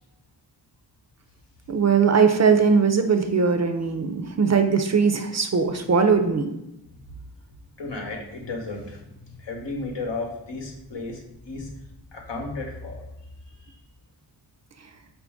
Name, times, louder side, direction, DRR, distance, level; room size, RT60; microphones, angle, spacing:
voice 1, 1.7-6.5, right 5 dB, 40° right, 7 dB, 0.5 m, -20 dB
voice 2, 7.8-11.7 12.1-13.0 13.6-13.8, left 3 dB, 85° left, 0 dB, 0.9 m, -34 dB
4.2 x 2.6 x 3.5 m, 0.87 s
cardioid pair, 45°, 42 cm